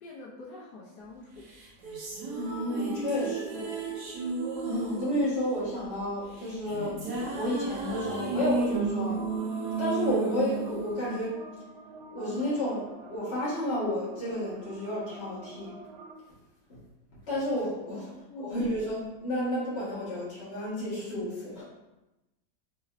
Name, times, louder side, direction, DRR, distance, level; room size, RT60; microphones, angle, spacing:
voice 1, 0.0-1.5 3.5-3.9 18.3-18.6, left 2 dB, 75° left, -6 dB, 1.3 m, -45 dB
sound 1, 1.5-11.9, right 3 dB, 75° right, 1.4 m, -34 dB
voice 2, 2.3-3.6 4.6-7.0 7.3-9.2 9.8-11.4 12.1-15.7 16.7-16.8 17.3-18.1 18.4-21.6, left 1 dB, 40° left, -10 dB, 1.8 m, -31 dB
sound 2, 8.7-16.1, right 2 dB, 90° right, 1.2 m, -48 dB
4.3 x 3.9 x 2.5 m, 0.98 s
omnidirectional pair, 1.8 m